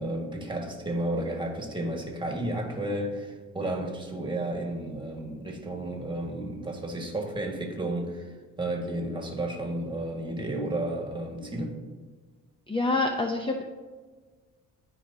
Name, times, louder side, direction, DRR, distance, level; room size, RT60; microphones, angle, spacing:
voice 1, 0.0-11.7, right 1 dB, 15° right, 2 dB, 1.6 m, -32 dB
voice 2, 12.7-13.6, left 2 dB, 15° left, 3 dB, 0.6 m, -26 dB
13.5 x 4.8 x 2.7 m, 1.4 s
cardioid pair, 90°, 30 cm